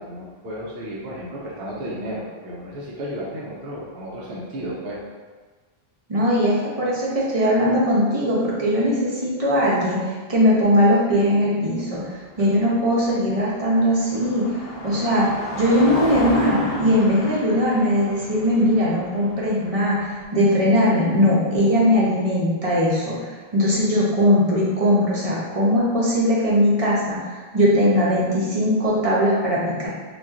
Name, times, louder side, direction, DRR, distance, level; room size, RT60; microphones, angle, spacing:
voice 1, 0.0-5.0, equal, 70° right, -5 dB, 0.9 m, -33 dB
voice 2, 6.1-14.4 14.8-15.3 15.5-29.9, equal, 40° right, -6 dB, 0.7 m, -20 dB
Car passing by, 12.1-20.2, left 1 dB, 70° left, 0.8 m, -33 dB
4.0 x 2.3 x 2.4 m, 1.4 s
omnidirectional pair, 1.1 m